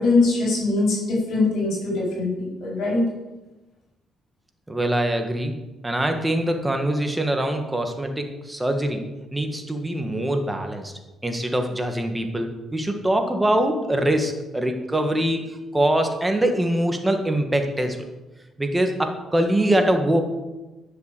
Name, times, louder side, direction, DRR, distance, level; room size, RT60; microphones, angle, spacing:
voice 1, 0.0-3.0, left 3 dB, 75° left, -3 dB, 4.5 m, -22 dB
voice 2, 4.7-5.5 5.8-10.9 11.2-18.0 18.6-20.2, right 1 dB, 10° right, 4 dB, 1.7 m, -23 dB
10.5 x 6.7 x 6.8 m, 1.1 s
cardioid pair, 90°, 0 cm